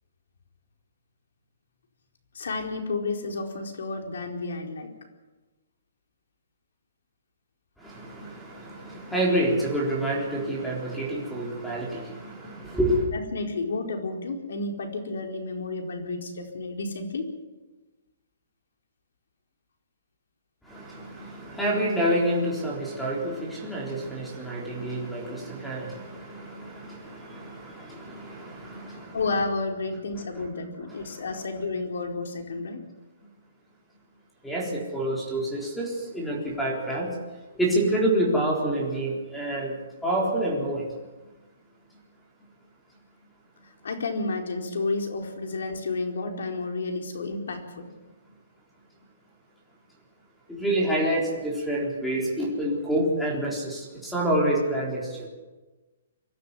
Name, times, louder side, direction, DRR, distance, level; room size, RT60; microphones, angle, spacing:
voice 1, 2.3-4.9 13.1-17.3 28.9-32.8 43.8-47.9, left 3 dB, 75° left, 4 dB, 4.5 m, -31 dB
voice 2, 7.8-13.1 20.6-29.2 30.9-31.4 34.4-37.1 37.5-40.9 50.5-55.3, right 1 dB, ahead, -3 dB, 3.9 m, -28 dB
24.0 x 13.0 x 9.7 m, 1.2 s
hypercardioid pair, 170°, 0 cm